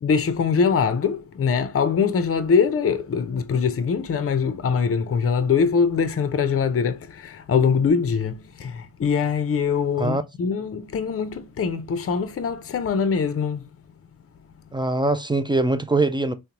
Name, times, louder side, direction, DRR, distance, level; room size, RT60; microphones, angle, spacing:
voice 1, 0.0-13.6, left 6 dB, 35° left, 0.6 m, -23 dB
voice 2, 14.7-16.3, right 2 dB, 15° right, 0.3 m, -22 dB
3.7 x 2.2 x 2.9 m
supercardioid pair, 45°, 41 cm